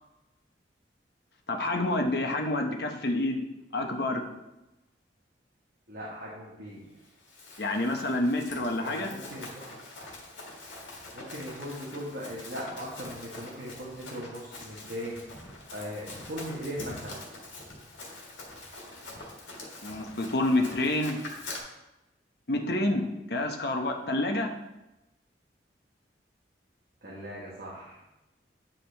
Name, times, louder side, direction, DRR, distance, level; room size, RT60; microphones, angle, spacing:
voice 1, 1.5-3.4 3.7-4.2 7.6-9.1 19.8-21.2 22.5-24.5, left 1 dB, 55° left, 3 dB, 0.8 m, -28 dB
voice 2, 5.9-7.1 8.8-9.7 11.1-15.4 15.7-17.2 27.0-28.0, equal, 55° right, -6 dB, 1.4 m, -39 dB
Run, 7.0-21.6, left 2 dB, 80° left, 1.7 m, -44 dB
8.7 x 5.0 x 3.3 m, 0.98 s
head